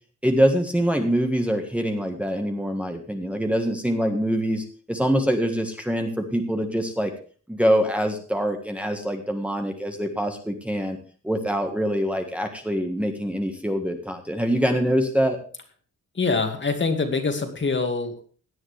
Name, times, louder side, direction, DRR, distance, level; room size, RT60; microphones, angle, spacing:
voice 1, 0.2-7.1 7.5-11.0 11.2-15.4, equal, 5° right, 3 dB, 1.6 m, -24 dB
voice 2, 16.1-18.3, left 4 dB, 40° left, 5 dB, 2.3 m, -25 dB
17.0 x 10.5 x 3.4 m, 0.39 s
wide cardioid pair, 160°, 29 cm